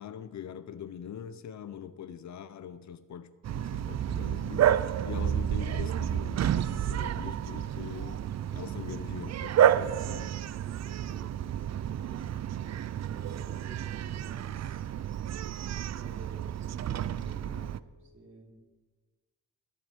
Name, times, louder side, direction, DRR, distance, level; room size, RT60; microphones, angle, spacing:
voice 1, 0.0-4.8 5.0-10.3, left 9 dB, 70° left, 0.8 m, -43 dB
Bark, 3.4-17.8, right 10 dB, 60° right, 0.5 m, -30 dB
voice 2, 10.7-12.3 13.1-14.9 15.9-18.5, right 2 dB, 40° right, 3.9 m, -53 dB
20.5 x 11.5 x 4.6 m
cardioid pair, 110°, 29 cm